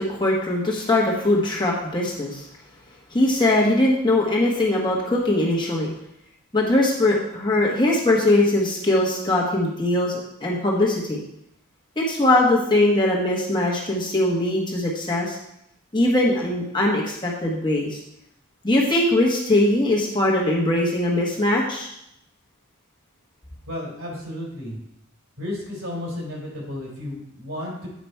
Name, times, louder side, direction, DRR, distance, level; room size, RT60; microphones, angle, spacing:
voice 1, 0.0-2.5 3.1-5.9 6.5-11.2 12.0-15.4 15.9-18.0 18.6-21.9, left 1 dB, 20° left, -3 dB, 1.2 m, -21 dB
voice 2, 23.7-24.8 25.4-27.9, left 1 dB, 70° right, -3 dB, 3.3 m, -33 dB
8.5 x 5.0 x 4.5 m, 0.79 s
head